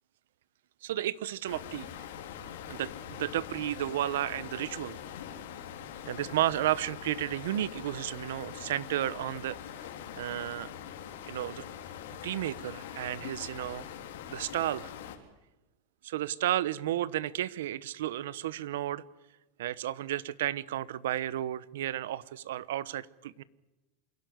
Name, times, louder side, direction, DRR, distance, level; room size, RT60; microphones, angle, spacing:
voice 1, 0.8-1.9 2.7-5.0 6.0-9.6 10.2-10.7 11.3-11.6 12.2-13.8 14.3-14.9 16.0-19.0 19.6-23.4, right 13 dB, 80° right, 19 dB, 1.0 m, -32 dB
sound 1, 1.5-15.2, left 9 dB, 80° left, 3.6 m, -43 dB
27.5 x 12.0 x 9.4 m, 1.1 s
supercardioid pair, 130°, 0 cm